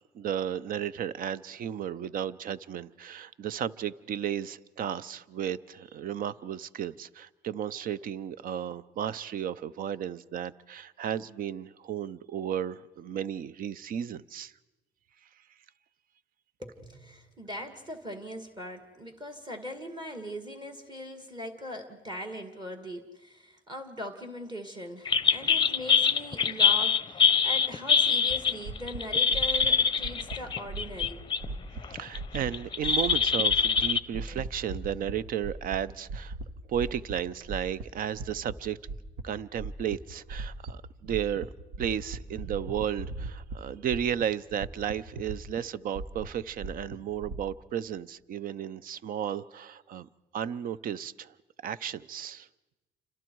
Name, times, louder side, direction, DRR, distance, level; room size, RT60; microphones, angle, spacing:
voice 1, 0.1-14.5 31.8-36.3 36.7-38.8 39.2-41.5 41.8-51.3 51.6-52.5, right 9 dB, 55° right, 18 dB, 0.7 m, -34 dB
voice 2, 16.6-31.2 34.3-34.4, equal, 25° right, 6 dB, 2.1 m, -40 dB
sound 1, 25.1-31.5 31.8-34.0, left 6 dB, 25° left, 0.6 m, -24 dB
sound 2, 28.3-28.4 28.7-29.0 29.3-29.7 30.0-30.4 30.7-31.1 31.4-31.8 32.1-32.5 32.8-33.2 33.5-33.8 34.1-35.2 35.4-35.8 36.1-36.5 36.7-37.2 37.5-38.5 38.9-39.2 39.6-40.0 40.3-40.7 41.0-41.5 41.7-43.6 43.9-44.2 44.5-45.6 46.0-47.4, right 3 dB, 85° right, 1.6 m, -38 dB
28.5 x 26.0 x 4.7 m, 1.1 s
cardioid pair, 110°, 17 cm